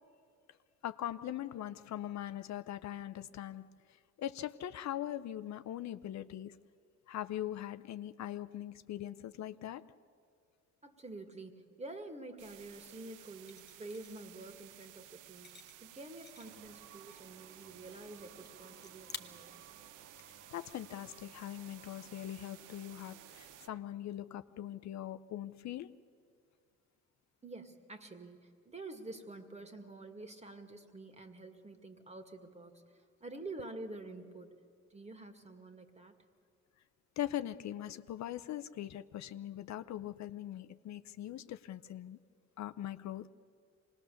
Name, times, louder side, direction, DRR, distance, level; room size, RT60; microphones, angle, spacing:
voice 1, 0.8-6.6 7.1-9.9 20.3-26.0 37.2-42.2 42.6-43.3, left 12 dB, 65° left, 13 dB, 0.6 m, -41 dB
voice 2, 10.8-19.5 27.4-32.8 33.2-34.5 34.9-36.1, right 2 dB, 20° right, 6 dB, 2.1 m, -48 dB
sound 1, 12.4-23.7, right 14 dB, 90° right, 0.6 m, -56 dB
sound 2, 12.8-12.9 13.5-14.7 15.2-16.7 17.1-17.3 17.6-18.1 18.4-18.5 18.7-19.2, left 6 dB, 35° left, 1.2 m, -51 dB
sound 3, 16.4-23.8, right 5 dB, 70° right, 1.9 m, -60 dB
25.5 x 19.5 x 7.0 m, 2.2 s
cardioid pair, 90°, 30 cm